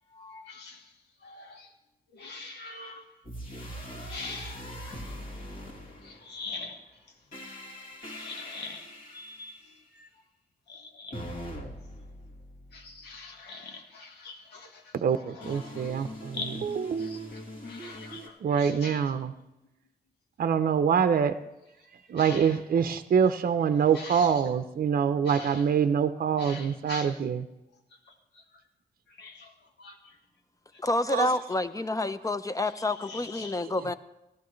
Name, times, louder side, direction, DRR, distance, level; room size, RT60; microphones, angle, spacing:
voice 1, 0.1-1.7 2.1-3.1 3.5-3.8 4.1-5.0 5.8-7.1 8.1-10.1 10.7-11.3 12.7-16.7 17.0-19.2 21.8-21.9 22.2-22.6 23.9-24.4 25.2-25.7 26.4-27.2 28.0-28.6 29.1-30.2 30.7-30.8 31.1-31.3 31.9-32.0 32.6-33.6, left 4 dB, 85° left, 3 dB, 1.5 m, -44 dB
sound 1, 3.2-6.5 7.3-9.8 11.1-13.2 15.4-18.3, equal, 55° left, 2.5 m, -42 dB
voice 2, 14.9-17.3 18.4-19.3 20.4-21.3 22.1-27.5 31.1-31.4 33.8-33.9, right 7 dB, 60° right, 10 dB, 0.6 m, -25 dB
voice 3, 30.8-33.9, left 2 dB, 20° left, 12 dB, 0.6 m, -28 dB
15.5 x 12.0 x 3.2 m, 0.95 s
cardioid pair, 60°, 17 cm